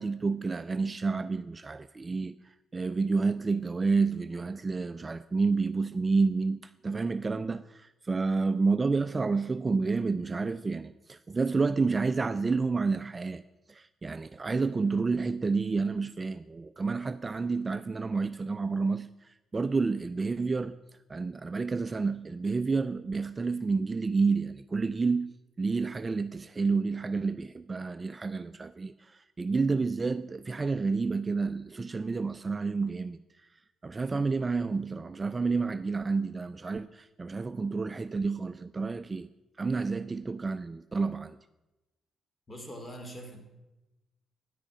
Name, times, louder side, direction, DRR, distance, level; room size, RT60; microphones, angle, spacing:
voice 1, 0.0-2.3 2.7-13.4 13.7-19.1 19.5-20.8 21.1-25.3 25.6-33.2 33.8-39.3 39.6-41.4, right 4 dB, 25° right, 0.3 m, -29 dB
voice 2, 42.5-43.4, equal, 25° left, 2.4 m, -42 dB
10.0 x 9.1 x 5.0 m
cardioid pair, 90°, 0 cm